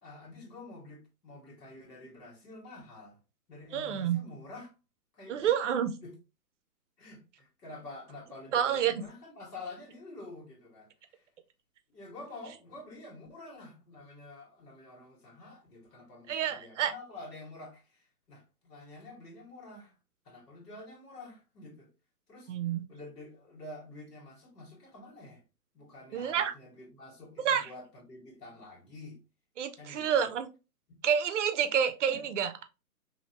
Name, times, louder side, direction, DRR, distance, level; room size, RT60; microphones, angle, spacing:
voice 1, 0.0-3.2 3.5-4.7 5.1-5.5 6.0-6.2 7.0-11.3 11.9-19.9 20.2-21.9 22.3-22.5 22.9-25.4 25.7-29.2 29.8-30.3 30.9-31.0 32.1-32.3, left 2 dB, 90° left, 1.5 m, -48 dB
voice 2, 3.7-4.2 5.3-5.9 8.5-8.9 16.3-16.9 22.5-22.9 26.1-26.5 27.4-27.7 29.6-30.5 31.0-32.6, right 8 dB, 50° right, 0.6 m, -28 dB
2.9 x 2.7 x 2.7 m
hypercardioid pair, 150°, 47 cm